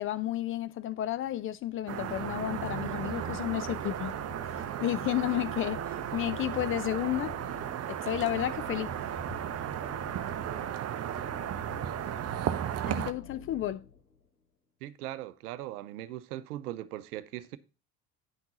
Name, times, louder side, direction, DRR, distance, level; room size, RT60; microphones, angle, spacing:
voice 1, 0.0-4.1 4.5-7.4 8.0-8.9 12.8-13.8, left 13 dB, 30° left, 0.4 m, -32 dB
sound 1, 1.9-13.1, right 10 dB, 35° right, 0.7 m, -35 dB
sound 2, 2.0-14.3, left 7 dB, 85° left, 2.6 m, -49 dB
voice 2, 14.8-17.6, right 14 dB, 70° right, 0.7 m, -39 dB
9.8 x 5.9 x 3.9 m
figure-of-eight pair, 60°, 46 cm